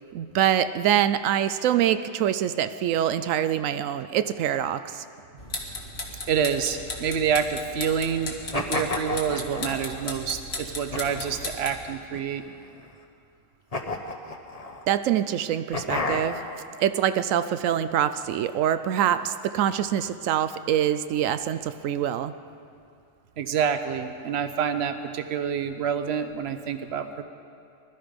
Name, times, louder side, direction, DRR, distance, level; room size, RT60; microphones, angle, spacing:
voice 1, 0.1-5.0 14.9-16.4 16.8-22.3, right 10 dB, 90° right, 12 dB, 1.0 m, -25 dB
sound 1, 5.4-11.9, left 2 dB, 55° left, 2.0 m, -36 dB
voice 2, 6.3-12.5 23.4-27.2, right 7 dB, 60° right, 9 dB, 1.0 m, -27 dB
sound 2, 8.5-10.1 10.9-11.5 12.1-12.9 13.7-14.8 15.7-16.6, left 3 dB, 30° left, 1.0 m, -32 dB
21.5 x 12.5 x 5.2 m, 2.4 s
omnidirectional pair, 1.3 m